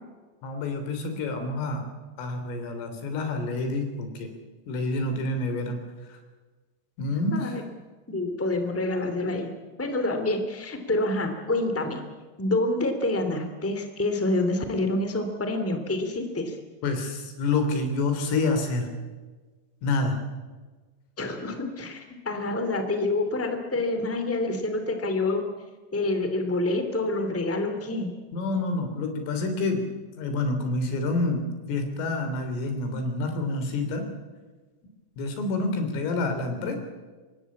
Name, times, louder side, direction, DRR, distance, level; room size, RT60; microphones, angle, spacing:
voice 1, 0.4-1.9 2.2-4.3 4.7-5.8 6.1-6.2 7.0-7.6 16.8-18.9 19.8-20.2 28.3-29.9 30.2-34.1 35.2-36.8, left 2 dB, 90° left, 6 dB, 5.8 m, -28 dB
voice 2, 8.1-9.5 9.8-12.0 12.4-16.5 21.2-25.4 25.9-28.1, left 2 dB, 10° left, 7 dB, 0.7 m, -27 dB
25.0 x 21.0 x 8.5 m, 1.3 s
omnidirectional pair, 5.6 m